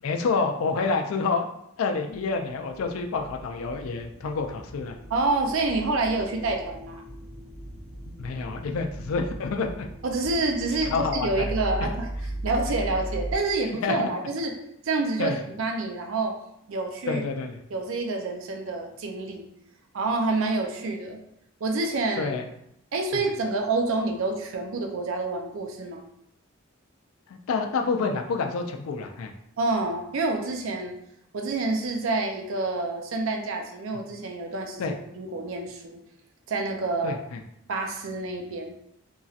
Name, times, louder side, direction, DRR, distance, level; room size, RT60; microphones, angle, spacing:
voice 1, 0.0-1.5 1.8-5.0 8.1-9.9 10.9-11.5 11.8-11.9 13.8-14.1 15.2-15.4 17.1-17.6 22.2-22.4 23.1-23.2 27.5-29.3 34.8-34.9 37.0-37.4, left 4 dB, 75° left, 4 dB, 0.4 m, -28 dB
sound 1, 2.1-13.3, right 1 dB, 20° right, 1.0 m, -37 dB
voice 2, 5.1-7.0 10.0-12.1 12.4-14.5 14.8-16.4 16.7-17.2 17.7-19.5 19.9-21.2 21.6-22.3 22.9-26.0 29.6-30.9 31.3-36.0 36.5-37.2 37.7-38.7, right 3 dB, 70° right, 3 dB, 0.4 m, -28 dB
3.0 x 2.7 x 2.4 m, 0.76 s
head